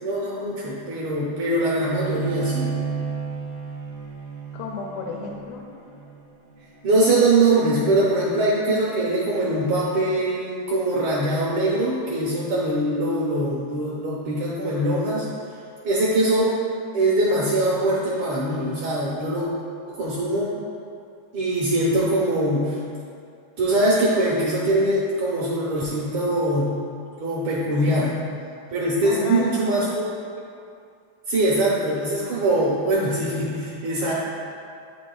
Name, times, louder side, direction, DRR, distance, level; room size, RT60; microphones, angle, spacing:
voice 1, 0.0-2.7 6.8-15.3 15.8-16.6 16.9-19.5 19.9-20.5 21.3-22.8 23.6-26.7 27.2-28.1 28.7-30.1 31.3-34.1, right 1 dB, 70° right, -6 dB, 1.8 m, -22 dB
Bowed string instrument, 1.8-7.1, right 6 dB, 90° right, 1.6 m, -32 dB
voice 2, 4.5-5.6 27.6-28.1 29.0-29.9, left 5 dB, 85° left, -1 dB, 2.5 m, -33 dB
8.9 x 6.2 x 2.3 m, 2.4 s
omnidirectional pair, 4.4 m